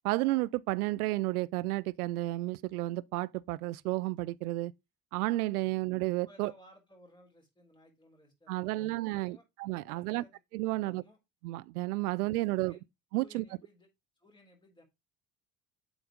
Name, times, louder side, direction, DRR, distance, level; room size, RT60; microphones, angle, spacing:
voice 1, 0.0-4.7 5.1-6.5 8.5-10.2 10.5-11.0 11.4-12.7 13.1-13.4, right 19 dB, 75° right, 0.5 m, -32 dB
voice 2, 6.2-9.4 9.8-11.2 12.1-12.8 13.1-13.9 14.2-14.8, equal, 10° left, 4.0 m, -60 dB
7.9 x 4.3 x 5.1 m
figure-of-eight pair, 50°, 45 cm